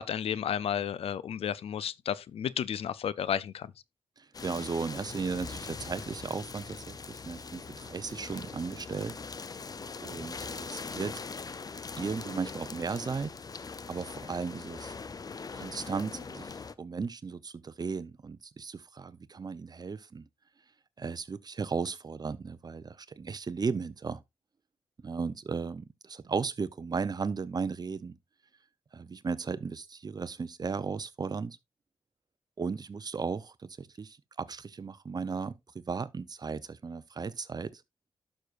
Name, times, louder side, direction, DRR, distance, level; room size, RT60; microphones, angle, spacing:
voice 1, 0.0-3.7, left 8 dB, 90° left, 0.5 m, -32 dB
voice 2, 4.2-9.2 10.0-11.2 12.0-13.3 13.9-15.0 15.5-16.5 16.8-20.2 21.0-24.2 25.0-28.2 28.9-31.6 32.6-37.8, right 5 dB, 45° right, 0.7 m, -35 dB
sound 1, 4.3-16.7, left 4 dB, 40° left, 0.6 m, -42 dB
11.5 x 6.4 x 2.5 m
cardioid pair, 85°, 10 cm